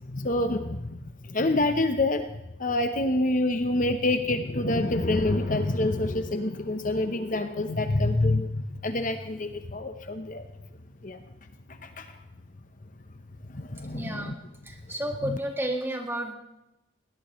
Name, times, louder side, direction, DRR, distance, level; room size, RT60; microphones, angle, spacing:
voice 1, 0.1-1.0 1.3-2.2 2.6-10.4 11.0-11.2 12.0-12.1 13.5-14.3 15.2-15.4, left 2 dB, 40° left, 7 dB, 0.9 m, -26 dB
voice 2, 13.9-14.3 14.6-16.3, right 1 dB, 10° right, 2 dB, 1.7 m, -31 dB
20.5 x 18.0 x 3.2 m, 0.91 s
head